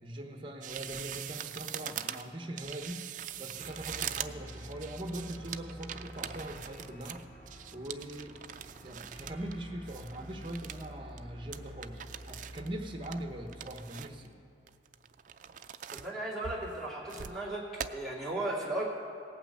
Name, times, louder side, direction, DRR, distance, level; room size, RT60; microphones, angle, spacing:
voice 1, 0.0-3.1 3.4-7.2 7.7-8.4 8.8-12.0 12.3-14.3, right 1 dB, 25° right, 4 dB, 1.0 m, -41 dB
sound 1, 0.6-9.6 9.9-10.9 11.2-11.3 11.5-12.7 13.0-14.3 14.7-16.1 16.4-17.4 17.8-17.9, right 9 dB, 45° right, 0.4 m, -42 dB
sound 2, 3.6-13.9, equal, 30° left, 2.9 m, -49 dB
voice 2, 15.9-18.8, right 2 dB, ahead, -6 dB, 2.3 m, -36 dB
17.5 x 6.0 x 7.8 m, 2.6 s
head